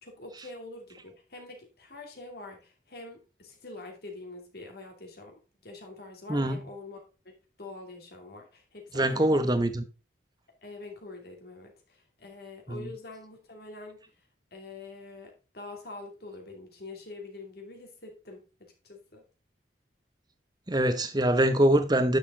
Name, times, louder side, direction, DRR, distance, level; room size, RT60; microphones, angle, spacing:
voice 1, 0.0-9.6 10.6-11.7 12.2-14.0 14.5-19.2, left 2 dB, 55° left, 2.7 m, -45 dB
voice 2, 8.9-9.8 12.7-12.9 20.7-22.2, right 1 dB, 20° right, 1.0 m, -24 dB
10.0 x 6.9 x 3.8 m
head